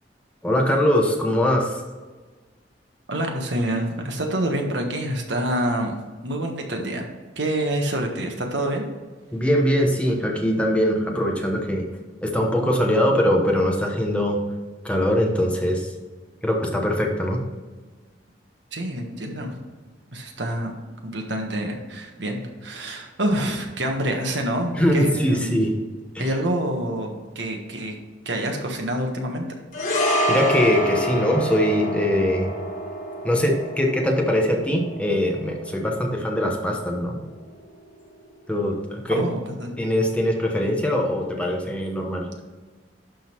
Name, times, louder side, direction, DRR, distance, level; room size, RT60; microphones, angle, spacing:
voice 1, 0.4-1.8 9.3-11.8 12.2-14.4 14.8-15.9 16.4-17.4 24.8-25.7 26.1-26.3 30.3-32.5 33.2-37.2 38.5-39.2 39.8-42.3, equal, 5° left, 0 dB, 1.0 m, -22 dB
voice 2, 3.1-7.1 7.3-8.9 18.7-19.6 20.1-20.8 21.0-25.6 26.2-28.0 28.2-29.4 39.1-39.7, right 1 dB, 70° right, 2 dB, 1.5 m, -27 dB
sound 1, 29.7-38.2 38.5-38.7, equal, 45° left, 1.6 m, -28 dB
11.5 x 3.9 x 4.6 m, 1.3 s
head